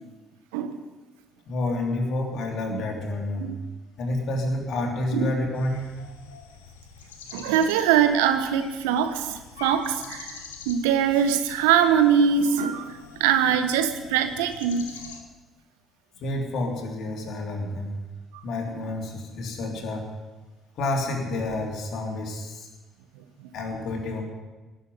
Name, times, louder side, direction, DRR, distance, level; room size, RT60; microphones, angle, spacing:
voice 1, 1.5-3.5 4.0-5.9 16.2-17.9 18.4-20.1 20.7-22.7 23.5-24.2, left 2 dB, 60° left, 1 dB, 3.4 m, -29 dB
sound 1, 5.5-15.2, left 6 dB, 80° left, 1.3 m, -44 dB
voice 2, 7.3-14.9 18.3-18.4, right 8 dB, 75° right, 9 dB, 1.2 m, -23 dB
19.0 x 7.9 x 9.5 m, 1.2 s
figure-of-eight pair, 45°, 0 cm